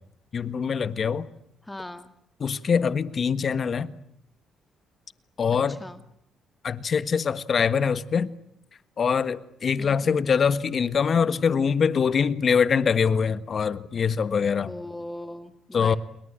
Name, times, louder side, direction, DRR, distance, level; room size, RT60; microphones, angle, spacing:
voice 1, 0.3-1.3 2.4-3.9 5.4-5.8 6.6-8.3 9.0-14.7 15.7-16.0, left 6 dB, 45° left, 1.5 m, -23 dB
voice 2, 1.6-2.1 5.7-6.0 9.8-10.2 14.7-16.0, left 1 dB, 10° left, 1.8 m, -39 dB
29.0 x 22.0 x 8.8 m
cardioid pair, 90°, 0 cm